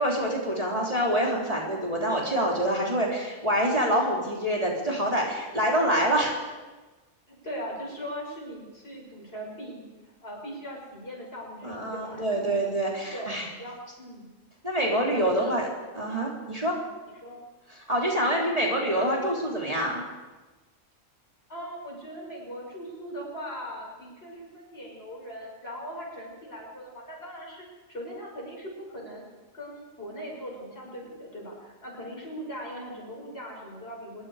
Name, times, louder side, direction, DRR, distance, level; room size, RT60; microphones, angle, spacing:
voice 1, 0.0-6.3 11.6-13.5 14.6-15.7 16.0-16.8 17.9-20.0, right 1 dB, 25° right, -3 dB, 3.6 m, -26 dB
voice 2, 7.3-12.6 13.1-13.3 13.6-14.3 15.1-15.5 16.6-16.8 17.2-17.4 18.3-18.4 21.5-29.2 29.5-34.3, equal, 45° left, -1 dB, 6.9 m, -40 dB
26.0 x 21.5 x 5.0 m, 1.2 s
omnidirectional pair, 1.4 m